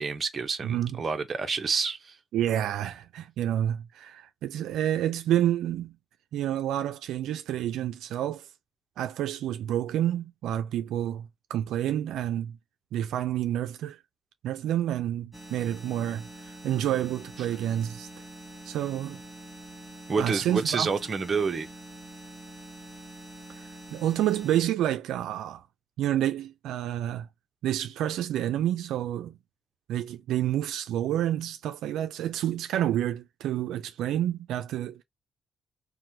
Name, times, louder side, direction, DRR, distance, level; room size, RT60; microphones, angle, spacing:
voice 1, 0.0-2.2 20.1-21.7, right 5 dB, 40° right, 0.6 m, -28 dB
voice 2, 0.6-1.0 2.3-5.9 6.3-8.5 9.0-12.6 12.9-14.0 14.4-18.1 18.6-19.2 20.2-20.9 23.5-25.6 26.0-27.3 27.6-29.4 29.9-35.0, right 11 dB, 85° right, 0.3 m, -29 dB
sound 1, 15.3-24.7, right 1 dB, 5° left, 1.0 m, -45 dB
3.0 x 2.1 x 2.7 m
cardioid pair, 90°, 0 cm